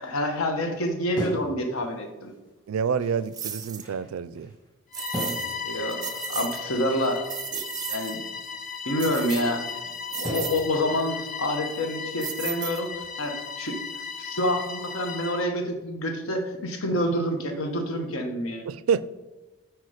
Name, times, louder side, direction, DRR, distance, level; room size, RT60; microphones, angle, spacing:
voice 1, 0.0-2.3 5.6-7.2 7.5-7.6 7.9-8.2 8.8-9.7 10.1-12.9 13.2-13.8 14.2-18.7, left 1 dB, 80° left, 1.1 m, -27 dB
sound 1, 1.2-2.6 3.0-4.7 5.1-7.1 7.4-8.7 9.1-9.2 9.7-9.8 10.2-10.8 11.2-11.6 12.0-12.5, equal, 20° left, 1.7 m, -39 dB
voice 2, 2.7-4.5 18.7-19.0, right 6 dB, 75° right, 0.4 m, -27 dB
sound 2, 3.3-3.9 4.9-5.6 5.9-6.6 7.0-8.2 9.0-9.7 10.1-10.7 12.2-13.1, right 9 dB, 20° right, 0.5 m, -35 dB
Bowed string instrument, 4.9-15.5, left 6 dB, 40° left, 0.6 m, -36 dB
8.3 x 4.5 x 5.0 m
head